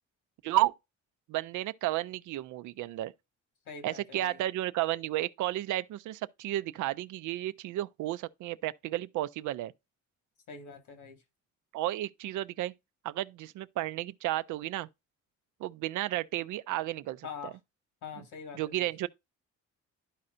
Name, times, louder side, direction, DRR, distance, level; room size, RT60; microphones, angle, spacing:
voice 1, 1.3-3.1 3.8-9.7 11.7-12.7 13.0-14.9 15.6-17.3 18.5-19.1, right 15 dB, 80° right, 0.5 m, -32 dB
voice 2, 3.7-4.4 10.5-11.2 17.2-17.6 18.0-18.9, left 6 dB, 85° left, 1.9 m, -44 dB
12.0 x 4.3 x 2.5 m
cardioid pair, 90°, 30 cm